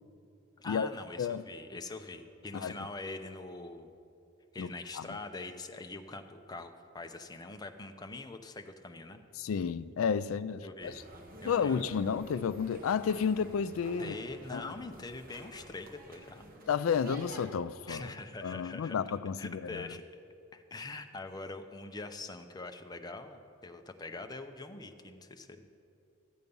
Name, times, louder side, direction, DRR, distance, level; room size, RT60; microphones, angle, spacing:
voice 1, 0.6-3.9 4.5-9.2 10.6-11.0 11.4-11.8 14.0-16.5 17.9-18.9 19.4-20.0 20.5-25.7, left 3 dB, 20° left, 0.6 m, -43 dB
voice 2, 9.4-10.9 11.4-14.1 14.5-14.6 16.7-18.0 18.4-19.9, left 6 dB, 85° left, 0.4 m, -31 dB
sound 1, 10.8-17.5, right 1 dB, 45° right, 1.2 m, -50 dB
13.0 x 8.2 x 5.4 m
head